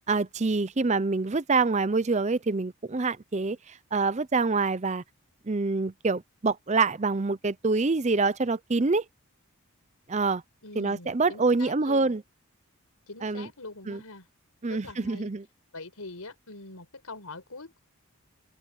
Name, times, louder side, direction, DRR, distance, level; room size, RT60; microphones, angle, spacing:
voice 1, 0.1-3.6 3.9-5.0 5.5-9.0 10.1-10.4 10.8-12.2 13.2-13.5 13.9-14.0 14.6-15.4, right 3 dB, 30° right, 0.6 m, -26 dB
voice 2, 10.6-12.1 13.1-14.3 14.7-15.3 15.7-17.8, left 3 dB, 80° left, 4.9 m, -43 dB
open air
head